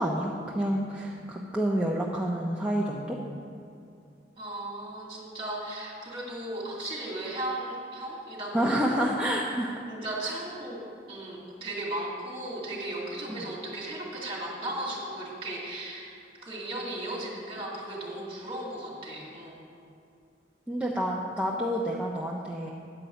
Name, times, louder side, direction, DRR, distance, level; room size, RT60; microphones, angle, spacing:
voice 1, 0.0-3.2 8.5-9.7 10.2-10.4 13.3-13.5 20.7-22.7, equal, 5° right, -3 dB, 0.6 m, -29 dB
voice 2, 4.4-9.3 9.9-10.8 11.1-16.1 16.4-19.7, right 1 dB, 30° right, -5 dB, 2.5 m, -36 dB
9.9 x 5.2 x 7.9 m, 2.4 s
head